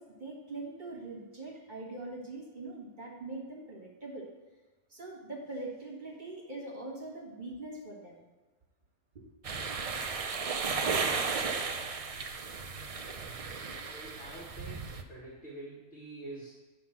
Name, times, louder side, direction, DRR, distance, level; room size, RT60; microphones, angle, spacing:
voice 1, 0.0-4.3 4.9-8.2 9.1-9.2, right 2 dB, 40° right, -4 dB, 1.9 m, -42 dB
sound 1, 9.4-15.0, right 5 dB, 65° right, 0.3 m, -34 dB
voice 2, 13.9-16.5, right 2 dB, 55° left, -6 dB, 2.1 m, -46 dB
9.5 x 3.8 x 5.9 m, 1.2 s
omnidirectional pair, 1.3 m